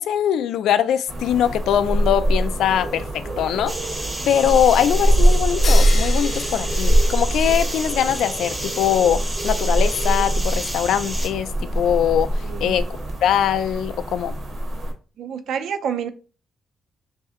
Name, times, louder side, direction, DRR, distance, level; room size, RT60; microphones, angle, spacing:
voice 1, 0.0-3.7 4.3-12.9 13.2-14.4, left 9 dB, 75° left, 0.3 m, -22 dB
sound 1, 1.1-14.9, right 1 dB, 35° right, 0.9 m, -22 dB
sound 2, 3.7-11.3, right 1 dB, 10° right, 0.6 m, -32 dB
sound 3, 5.6-7.8, left 5 dB, 45° left, 0.7 m, -32 dB
voice 2, 12.4-12.8 15.2-16.1, right 7 dB, 65° right, 0.4 m, -28 dB
3.2 x 2.7 x 3.5 m
cardioid pair, 170°, 0 cm